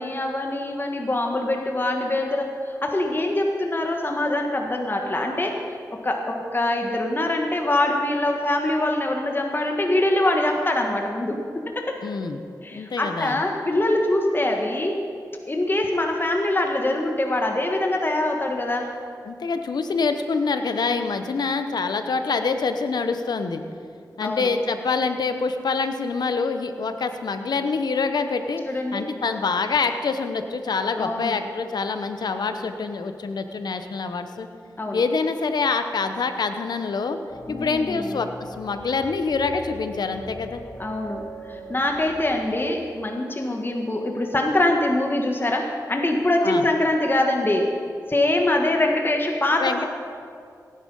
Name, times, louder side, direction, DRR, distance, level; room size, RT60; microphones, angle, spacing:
voice 1, 0.0-5.6 6.0-11.4 11.7-12.0 12.6-15.0 15.5-18.9 24.2-24.5 28.7-29.0 31.0-31.4 34.8-35.0 37.5-38.1 40.8-41.2 41.5-47.7 48.1-49.8, left 1 dB, 30° left, 2 dB, 1.6 m, -24 dB
voice 2, 12.0-12.4 12.7-13.4 19.2-23.6 24.2-28.6 28.9-34.5 34.9-37.2 37.5-38.3 38.6-40.6 46.4-46.6 49.6-49.8, left 4 dB, 75° left, 8 dB, 1.0 m, -25 dB
sound 1, 37.3-42.4, equal, 55° left, 4.1 m, -41 dB
16.5 x 10.0 x 5.5 m, 2.3 s
cardioid pair, 50°, 7 cm